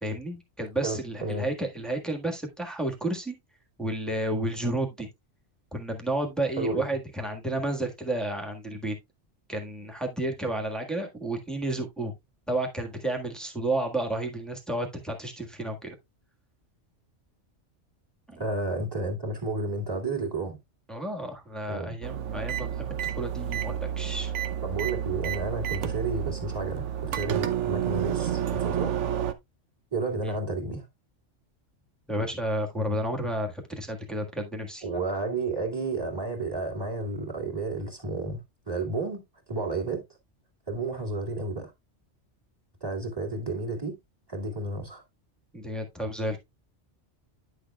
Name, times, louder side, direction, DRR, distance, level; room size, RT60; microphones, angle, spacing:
voice 1, 0.0-3.4 3.8-5.1 5.7-8.9 9.5-12.1 12.5-15.9 18.3-18.4 20.9-24.3 30.2-30.3 32.1-34.9 45.5-46.4, right 1 dB, ahead, 1.4 m, -31 dB
voice 2, 0.8-1.5 6.6-6.9 18.4-20.6 21.7-22.0 24.6-28.9 29.9-30.9 34.8-39.2 39.5-40.0 40.7-41.7 42.8-44.0 44.3-45.0, right 3 dB, 20° right, 2.3 m, -31 dB
sound 1, 22.0-29.3, right 9 dB, 85° right, 1.0 m, -30 dB
10.0 x 6.5 x 2.3 m
omnidirectional pair, 1.2 m